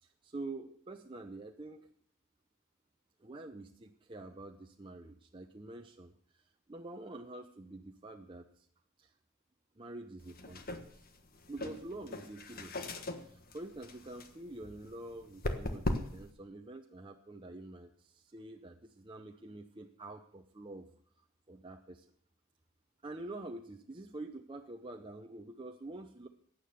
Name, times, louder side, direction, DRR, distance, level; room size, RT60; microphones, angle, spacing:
voice 1, 0.0-1.9 3.2-8.7 9.0-9.2 9.8-11.1 11.5-12.7 13.2-20.9 21.2-22.1 23.0-26.3, right 2 dB, 25° right, 4 dB, 0.7 m, -47 dB
Cushion pat, 10.2-16.3, left 1 dB, 45° left, 1.4 m, -40 dB
15.5 x 9.5 x 6.7 m, 0.64 s
head